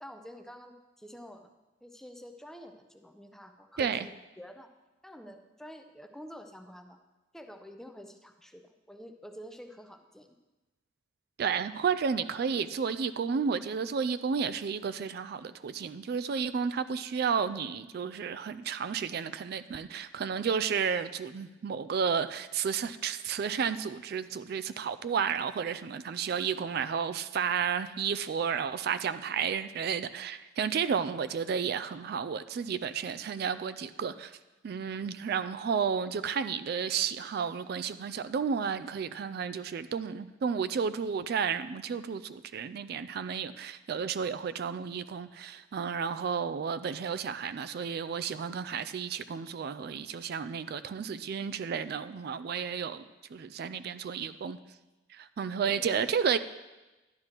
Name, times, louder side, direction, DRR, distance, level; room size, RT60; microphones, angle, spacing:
voice 1, 0.0-1.5 1.8-4.7 5.0-7.0 7.3-10.4 55.7-55.9, equal, 5° left, 0.6 m, -48 dB
voice 2, 11.4-34.4 34.6-53.0 53.3-54.6 55.1-56.4, right 6 dB, 55° right, 0.3 m, -32 dB
11.5 x 11.0 x 3.0 m
head